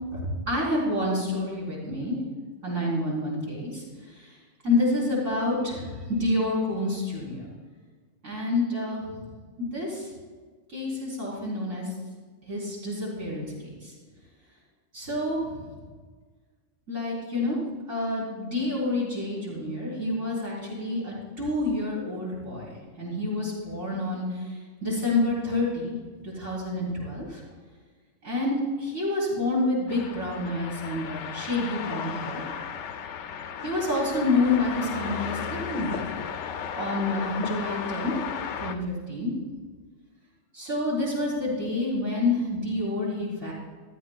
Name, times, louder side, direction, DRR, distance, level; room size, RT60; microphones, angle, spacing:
voice 1, 0.5-2.2 2.6-3.8 4.6-7.5 8.2-9.0 9.6-10.1 10.7-11.9 12.5-13.9 14.9-15.7 16.9-17.6 17.9-24.4 24.8-26.0 26.2-27.4 28.2-32.4 33.6-36.1 36.7-38.2 38.6-39.3 40.5-43.5, left 2 dB, 75° right, -6 dB, 4.5 m, -28 dB
sound 1, 29.9-38.8, left 7 dB, 70° left, 0.9 m, -35 dB
14.5 x 13.0 x 2.4 m, 1.5 s
omnidirectional pair, 1.3 m